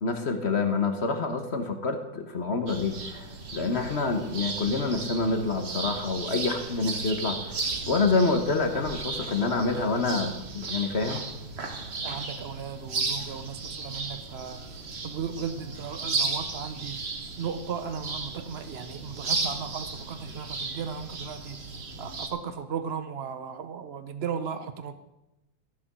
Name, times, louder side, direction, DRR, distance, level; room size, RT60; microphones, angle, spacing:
voice 1, 0.0-3.2 3.5-7.4 7.9-11.2, left 3 dB, 40° left, 6 dB, 1.1 m, -27 dB
sound 1, 2.7-22.3, right 3 dB, 35° right, 1.3 m, -35 dB
voice 2, 12.0-14.6 15.0-17.0 17.4-21.6 22.0-24.9, right 7 dB, 75° right, 10 dB, 0.5 m, -36 dB
14.0 x 6.9 x 6.1 m, 0.95 s
omnidirectional pair, 2.1 m